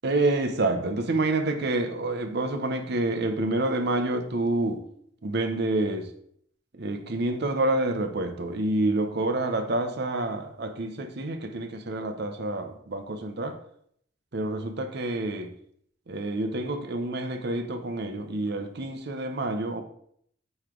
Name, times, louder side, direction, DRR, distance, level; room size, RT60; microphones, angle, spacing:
voice 1, 0.0-4.8 5.2-6.1 6.7-13.6 14.3-15.5 16.1-19.8, right 2 dB, 55° right, 0.8 m, -28 dB
9.3 x 3.2 x 3.7 m
head